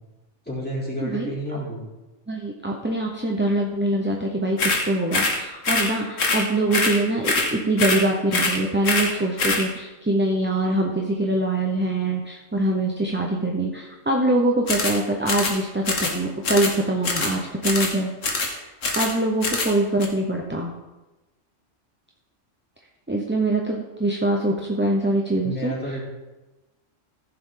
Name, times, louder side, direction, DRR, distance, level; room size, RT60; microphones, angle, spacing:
voice 1, 0.4-1.8 25.4-26.0, equal, 5° left, -6 dB, 3.4 m, -30 dB
voice 2, 2.3-18.3 18.9-20.7 23.1-25.7, right 1 dB, 10° right, -1 dB, 0.7 m, -24 dB
sound 1, 4.6-4.9 5.1-5.4 5.6-5.9 6.2-6.5 6.7-7.0 7.2-7.5 7.8-8.0 8.3-8.6 8.8-9.1 9.4-9.7 14.7-15.0 15.3-15.6 15.9-16.2 16.4-16.8 17.0-17.4 17.6-17.9 18.2-18.5 18.8-19.1 19.4-19.7 20.0-20.1, left 3 dB, 80° left, 1.8 m, -23 dB
15.0 x 6.9 x 3.9 m, 1.1 s
omnidirectional pair, 1.3 m